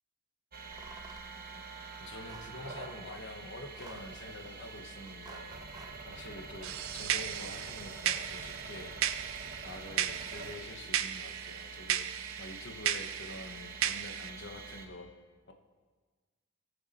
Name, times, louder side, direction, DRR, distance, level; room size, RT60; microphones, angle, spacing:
sound 1, 0.5-14.9, right 4 dB, 45° right, 1.1 m, -46 dB
sound 2, 0.7-1.3 2.3-2.6 3.6-4.2 5.0-6.0, right 2 dB, 20° right, 0.8 m, -52 dB
voice 1, 1.3-5.6 6.0-8.9 9.6-15.1 15.5-15.6, left 2 dB, 60° left, 4 dB, 1.1 m, -47 dB
sound 3, 6.6-14.3, right 11 dB, 70° right, 0.5 m, -35 dB
19.5 x 6.9 x 4.2 m, 1.4 s
head